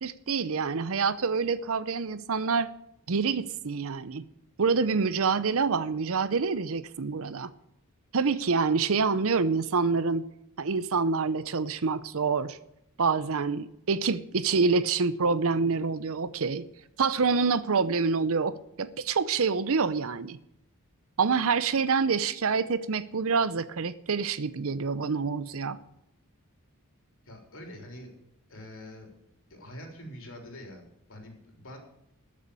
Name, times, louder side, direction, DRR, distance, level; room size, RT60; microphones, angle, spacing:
voice 1, 0.0-2.7 3.1-4.2 4.6-7.5 8.1-10.2 10.6-12.6 13.0-16.6 17.0-20.4 21.2-25.8, right 5 dB, 70° right, 0.7 m, -27 dB
voice 2, 27.2-28.1 28.5-29.1 29.5-31.8, left 1 dB, 65° left, 3.8 m, -45 dB
13.0 x 6.9 x 8.5 m
head